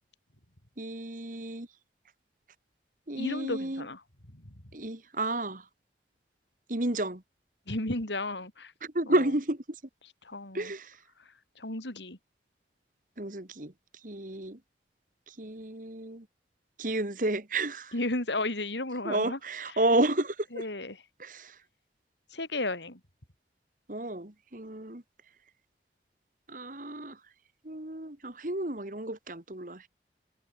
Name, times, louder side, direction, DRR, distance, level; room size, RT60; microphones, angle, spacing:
voice 1, 0.8-1.7 3.1-3.9 4.7-5.6 6.7-7.2 8.8-9.6 10.5-11.0 13.2-13.7 14.0-14.6 15.3-16.3 16.8-17.9 19.0-20.6 21.2-21.6 23.9-25.0 26.5-27.2 27.6-29.9, right 2 dB, 50° right, 2.2 m, -31 dB
voice 2, 3.2-4.0 4.3-4.4 7.7-8.7 9.1-9.2 10.2-10.7 11.6-12.2 17.9-19.4 19.7-19.8 20.5-21.0 22.3-23.0, left 2 dB, 90° left, 4.9 m, -33 dB
head